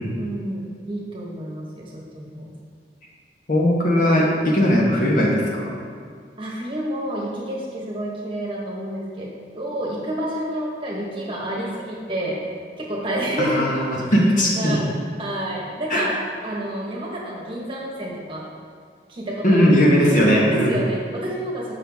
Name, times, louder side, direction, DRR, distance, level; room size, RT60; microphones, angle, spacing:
voice 1, 0.2-2.5 6.4-12.4 12.8-13.7 14.5-14.8 15.2-16.1 16.4-18.4 19.1-19.8 20.2-21.8, right 1 dB, 30° right, -4 dB, 1.2 m, -29 dB
voice 2, 3.5-5.7 13.4-14.8 15.9-16.0 19.4-20.8, equal, 50° left, -3 dB, 1.2 m, -18 dB
6.7 x 5.8 x 3.5 m, 2.1 s
head